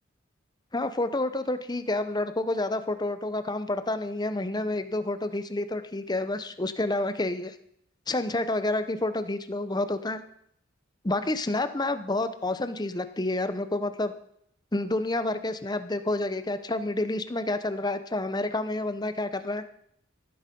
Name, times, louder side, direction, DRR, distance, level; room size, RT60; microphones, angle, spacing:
voice 1, 0.7-7.6 8.1-10.2 11.0-14.1 14.7-19.6, left 2 dB, 20° left, 11 dB, 0.8 m, -29 dB
13.0 x 12.0 x 5.3 m, 0.69 s
head